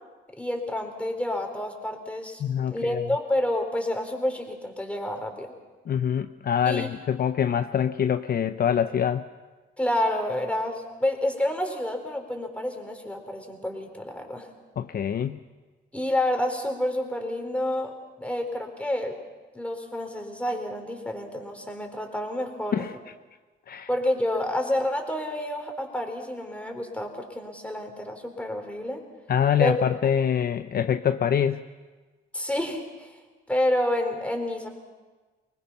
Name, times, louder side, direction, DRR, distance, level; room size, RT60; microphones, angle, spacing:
voice 1, 0.4-2.4 2.7-5.5 6.7-6.9 9.8-14.5 15.9-19.2 19.5-22.8 23.9-29.0 29.6-29.8 32.3-33.2 33.5-34.7, left 1 dB, 5° left, 3 dB, 3.9 m, -29 dB
voice 2, 2.4-3.0 5.9-9.2 14.8-15.4 22.7-22.9 23.7-23.9 29.3-31.6, left 8 dB, 50° left, 9 dB, 0.7 m, -25 dB
24.0 x 20.5 x 5.9 m, 1.3 s
cardioid pair, 90°, 20 cm